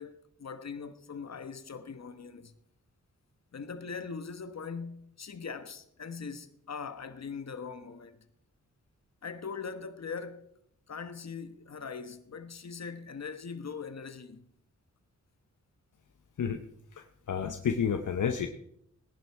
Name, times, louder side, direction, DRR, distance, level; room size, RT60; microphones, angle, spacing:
voice 1, 0.0-2.5 3.5-8.2 9.2-10.5 10.9-14.5, left 5 dB, 55° left, 1.3 m, -41 dB
voice 2, 16.9-18.5, left 7 dB, 70° left, 0.9 m, -30 dB
18.0 x 10.5 x 4.7 m
cardioid pair, 70°, 31 cm